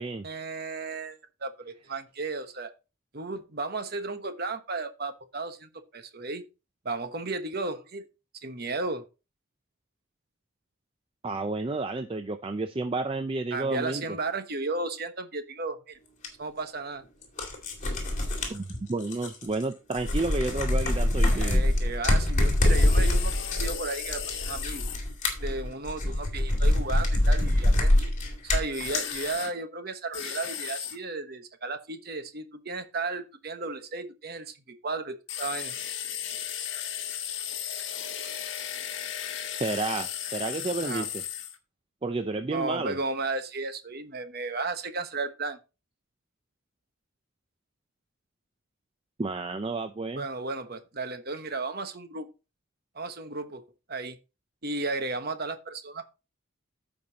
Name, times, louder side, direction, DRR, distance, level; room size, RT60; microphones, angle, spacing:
voice 1, 0.2-2.7 3.1-6.4 6.8-8.0 8.4-9.0 13.5-16.0 16.4-17.0 21.3-24.9 25.4-28.1 28.4-35.7 40.8-41.0 42.5-45.6 50.1-52.3 52.9-53.6 53.9-54.2 54.6-56.1, right 3 dB, 45° right, 1.1 m, -34 dB
voice 2, 11.2-14.0 18.5-18.6 18.9-21.6 39.6-41.2 42.0-43.0 49.2-50.2, right 3 dB, 25° right, 0.4 m, -31 dB
sound 1, 16.2-16.3 17.2-19.6 19.9-29.2, left 1 dB, 35° left, 2.3 m, -24 dB
sound 2, 22.6-25.0 28.7-29.5 30.1-31.0 35.3-41.6, left 9 dB, 60° left, 1.3 m, -35 dB
14.5 x 5.3 x 2.9 m
head